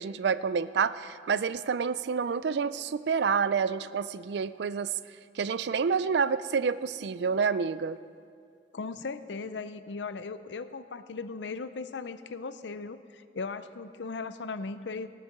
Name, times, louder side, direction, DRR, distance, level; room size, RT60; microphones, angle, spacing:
voice 1, 0.0-4.9 5.4-8.0, right 6 dB, 70° right, 16 dB, 0.4 m, -28 dB
voice 2, 8.7-15.1, left 4 dB, 85° left, 13 dB, 0.6 m, -38 dB
17.0 x 8.1 x 6.6 m, 2.2 s
head